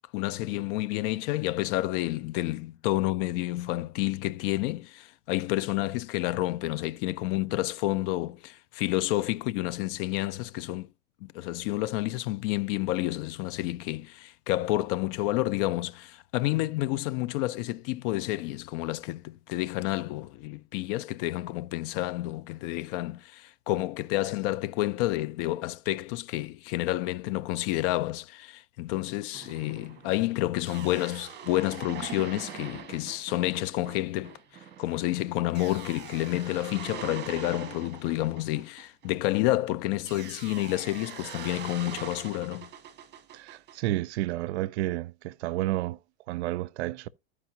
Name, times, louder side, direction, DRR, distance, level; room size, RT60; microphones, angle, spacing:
voice 1, 0.1-10.9 11.2-42.7, left 16 dB, 55° left, 0.4 m, -30 dB
sound 1, 29.3-39.5 40.1-43.8, right 9 dB, 30° right, 1.6 m, -43 dB
voice 2, 43.3-46.0 46.3-47.1, right 16 dB, 80° right, 0.5 m, -31 dB
13.5 x 4.9 x 2.7 m
supercardioid pair, 125°, 33 cm